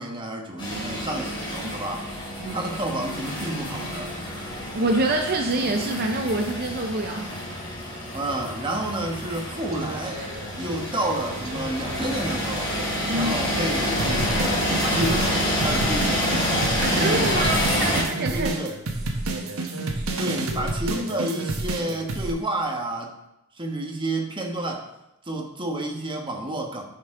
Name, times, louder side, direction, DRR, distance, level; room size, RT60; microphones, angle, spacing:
voice 1, 0.0-2.1 2.5-4.2 8.1-10.2 10.6-12.8 13.1-16.3 16.9-17.5 17.7-18.0 18.3-18.7 20.2-23.2 23.6-24.9 25.2-26.8, right 1 dB, 25° right, 1 dB, 1.2 m, -30 dB
sound 1, 0.6-18.0, left 1 dB, 25° left, 2.6 m, -28 dB
voice 2, 2.4-2.7 4.7-7.3 13.1-13.3 16.8-18.5, right 2 dB, 45° right, 3 dB, 0.6 m, -26 dB
sound 2, 9.6-12.2 12.7-22.3, right 2 dB, 85° right, 1.3 m, -30 dB
10.0 x 6.6 x 3.7 m, 0.88 s
head